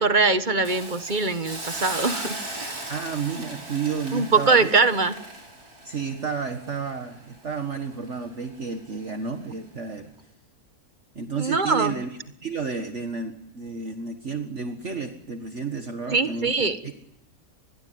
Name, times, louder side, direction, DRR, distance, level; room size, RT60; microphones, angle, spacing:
voice 1, 0.0-2.7 4.1-5.1 11.4-11.9 16.1-16.8, right 4 dB, 30° right, 11 dB, 1.3 m, -22 dB
Hiss, 0.6-7.7 8.1-8.2, right 2 dB, 65° right, 6.5 m, -37 dB
voice 2, 2.9-4.7 5.8-10.1 11.2-12.1 12.4-16.9, right 5 dB, 45° right, 6 dB, 1.8 m, -31 dB
26.5 x 21.0 x 9.4 m, 0.81 s
omnidirectional pair, 1.7 m